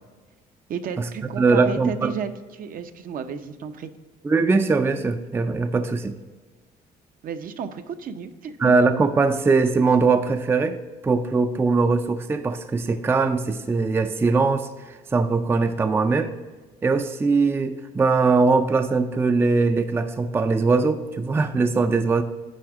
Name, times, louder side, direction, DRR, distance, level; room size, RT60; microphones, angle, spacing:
voice 1, 0.7-3.9 7.2-8.7, right 7 dB, 55° right, 9 dB, 0.6 m, -33 dB
voice 2, 1.4-2.1 4.2-6.2 8.6-10.8 11.0-16.3 16.8-22.2, right 4 dB, 15° right, 9 dB, 0.4 m, -21 dB
9.7 x 3.5 x 6.0 m, 1.3 s
cardioid pair, 110°, 17 cm